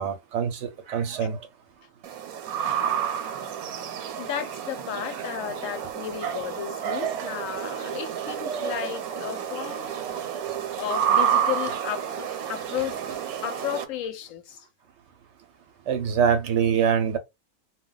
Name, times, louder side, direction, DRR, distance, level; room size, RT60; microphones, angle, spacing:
voice 1, 0.0-1.4 6.2-6.4 6.8-7.3 8.3-8.9 9.7-10.6 15.9-17.2, right 7 dB, 65° right, 0.8 m, -26 dB
sound 1, 2.0-13.8, right 8 dB, 85° right, 1.1 m, -30 dB
voice 2, 4.2-9.9 10.8-14.7, left 10 dB, 70° left, 0.9 m, -34 dB
2.3 x 2.2 x 3.7 m
omnidirectional pair, 1.5 m